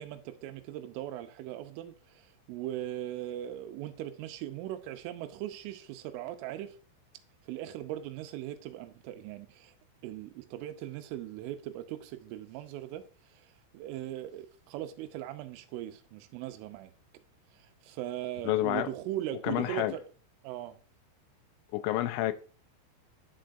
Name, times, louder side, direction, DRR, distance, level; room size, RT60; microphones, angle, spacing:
voice 1, 0.0-6.8 7.5-9.7 10.0-16.9 17.6-20.1 20.4-20.8, right 13 dB, 90° right, 3.3 m, -39 dB
voice 2, 18.5-18.9 19.4-19.9 21.7-22.3, left 15 dB, 80° left, 2.9 m, -29 dB
10.5 x 6.3 x 2.6 m
omnidirectional pair, 5.5 m